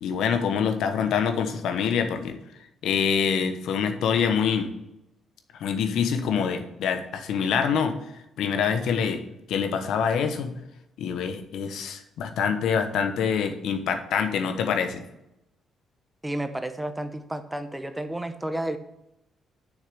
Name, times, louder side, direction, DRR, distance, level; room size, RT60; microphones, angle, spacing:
voice 1, 0.0-2.4 2.8-4.7 5.6-7.9 8.4-9.2 9.5-10.5 11.0-15.0, left 7 dB, 80° left, 7 dB, 1.1 m, -25 dB
voice 2, 16.2-18.8, right 1 dB, 10° right, 9 dB, 0.9 m, -31 dB
6.7 x 6.4 x 6.9 m, 0.87 s
cardioid pair, 90°, 0 cm